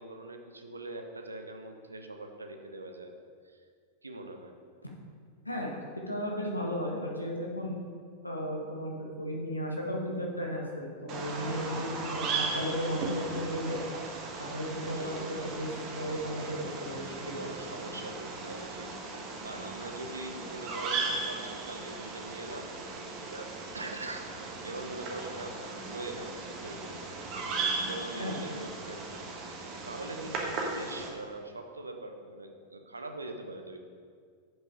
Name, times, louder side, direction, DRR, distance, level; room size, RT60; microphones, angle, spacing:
voice 1, 0.0-3.1 3.4-3.6 4.0-4.5 14.9-15.6 17.2-24.3 24.6-25.6 25.9-26.9 27.7-29.0 29.5-33.8, right 2 dB, 80° right, 5 dB, 0.7 m, -42 dB
voice 2, 6.1-7.8 8.2-13.8 14.4-17.3 28.2-28.4, equal, 85° left, -1 dB, 1.2 m, -35 dB
Bird vocalization bird call bird song, 11.1-31.1, right 3 dB, 35° right, 1.3 m, -37 dB
7.7 x 5.4 x 4.8 m, 2.1 s
figure-of-eight pair, 90°, 0 cm